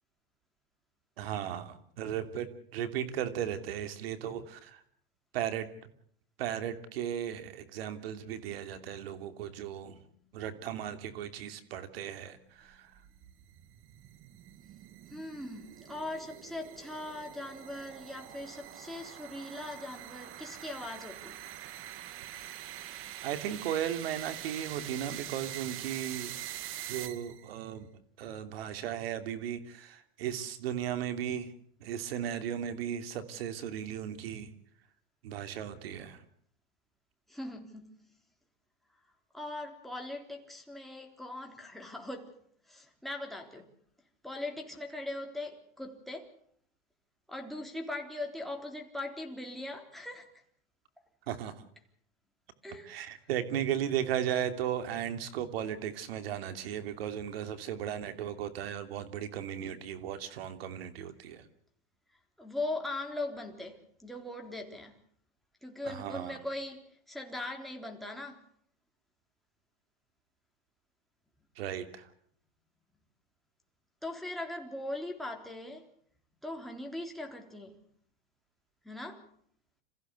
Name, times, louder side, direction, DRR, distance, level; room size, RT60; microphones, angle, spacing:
voice 1, 1.2-4.8 5.3-5.9 6.4-10.0 10.3-12.9 23.2-26.3 26.9-27.9 28.2-31.5 31.8-34.5 35.2-36.2 51.3-51.6 52.8-61.5 65.8-66.4 71.6-72.1, right 10 dB, 80° right, 3.0 m, -36 dB
sound 1, 12.7-27.5, right 13 dB, 45° right, 1.5 m, -45 dB
voice 2, 15.1-21.5 37.3-38.1 39.3-42.3 42.7-43.7 44.2-46.3 47.3-50.3 52.6-53.1 62.4-65.0 65.6-68.4 74.0-75.9 76.4-77.8 78.8-79.3, left 2 dB, ahead, 3.7 m, -40 dB
27.5 x 15.5 x 8.3 m
supercardioid pair, 120°, 30 cm